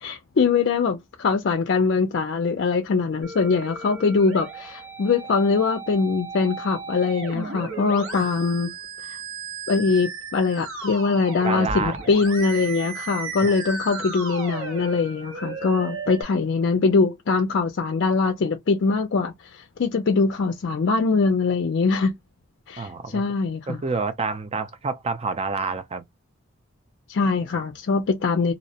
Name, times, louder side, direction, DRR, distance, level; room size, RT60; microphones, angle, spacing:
voice 1, 0.0-8.7 9.1-9.2 9.7-22.2 22.7-23.8 27.1-28.5, left 4 dB, 60° left, 0.4 m, -22 dB
Musical instrument, 3.2-16.2, right 4 dB, 85° right, 1.1 m, -35 dB
voice 2, 11.4-11.9 13.4-13.5 22.8-23.2 23.7-26.0, right 4 dB, 30° right, 0.4 m, -28 dB
2.6 x 2.1 x 2.8 m
head